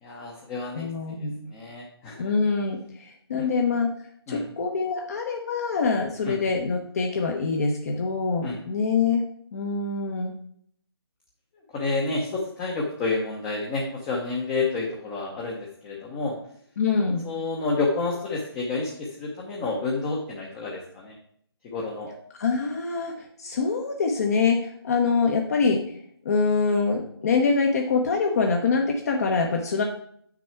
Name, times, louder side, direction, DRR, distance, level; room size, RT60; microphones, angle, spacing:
voice 1, 0.0-2.3 3.4-3.5 4.3-4.5 6.2-6.4 8.4-8.6 11.7-16.3 17.2-21.2 21.6-22.1, left 3 dB, 15° left, -2 dB, 0.8 m, -29 dB
voice 2, 0.8-1.3 2.2-3.9 4.3-9.2 9.5-10.3 16.8-17.3 22.4-25.8 26.2-29.8, left 4 dB, 35° left, 2 dB, 0.9 m, -24 dB
7.9 x 6.1 x 4.4 m, 0.65 s
figure-of-eight pair, 155°, 14 cm